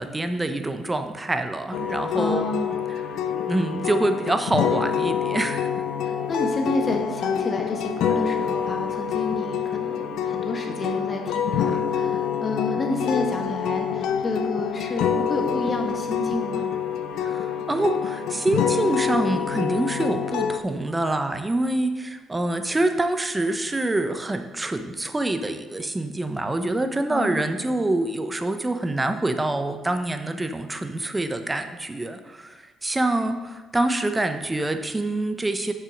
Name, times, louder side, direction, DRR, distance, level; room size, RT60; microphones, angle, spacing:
voice 1, 0.0-2.4 3.5-5.7 17.2-35.7, right 2 dB, 20° right, 7 dB, 0.8 m, -26 dB
sound 1, 1.7-20.6, left 8 dB, 75° left, 0.5 m, -26 dB
voice 2, 2.1-2.8 6.0-16.7 27.1-27.4, left 2 dB, 40° left, 2 dB, 1.6 m, -29 dB
6.7 x 5.8 x 5.3 m, 1.3 s
supercardioid pair, 65°, 0 cm